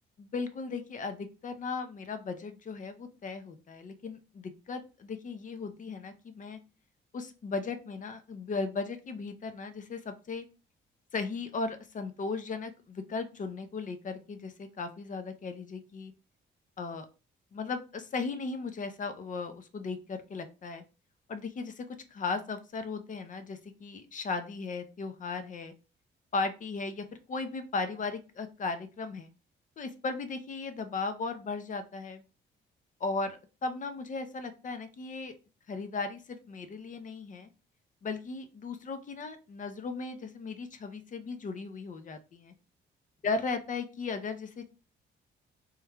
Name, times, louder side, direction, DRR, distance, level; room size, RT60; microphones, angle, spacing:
voice 1, 0.2-6.6 7.1-10.5 11.1-16.1 16.8-17.1 17.5-20.8 21.3-25.7 26.3-29.3 29.8-32.2 33.0-35.3 35.7-37.5 38.0-42.5 43.2-44.7, left 4 dB, 40° left, 9 dB, 0.6 m, -36 dB
3.1 x 2.3 x 3.4 m, 0.32 s
cardioid pair, 90°, 20 cm